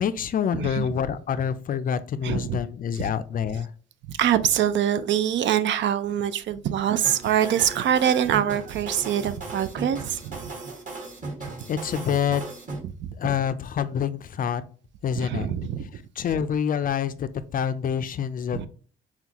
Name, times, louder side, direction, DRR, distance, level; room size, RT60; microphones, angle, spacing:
voice 1, 0.0-3.7 11.7-12.4 13.2-14.6 15.0-15.5 15.9-18.7, left 8 dB, 45° left, 0.4 m, -27 dB
voice 2, 0.5-0.8 2.2-2.6 4.1-10.5 13.0-13.1 15.2-15.9 18.5-18.7, right 10 dB, 70° right, 0.4 m, -24 dB
sound 1, 7.0-12.8, right 3 dB, 40° right, 1.6 m, -37 dB
5.7 x 2.3 x 2.8 m
cardioid pair, 90°, 20 cm